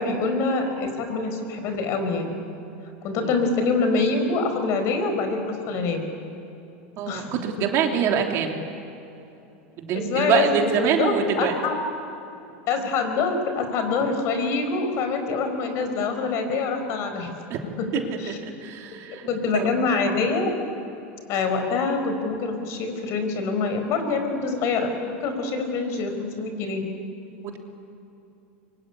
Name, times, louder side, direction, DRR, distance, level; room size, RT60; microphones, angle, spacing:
voice 1, 0.0-2.4 3.0-6.0 7.1-7.4 9.9-11.7 12.7-17.3 18.2-18.4 18.9-19.0 19.3-20.5 21.3-26.8, left 4 dB, 50° left, 6 dB, 4.8 m, -25 dB
voice 2, 7.0-8.6 9.8-11.5 12.8-12.9 17.5-17.6 17.9-19.7 27.4-27.6, right 8 dB, 45° right, 2 dB, 3.2 m, -25 dB
24.5 x 23.5 x 9.8 m, 2.8 s
supercardioid pair, 135°, 6 cm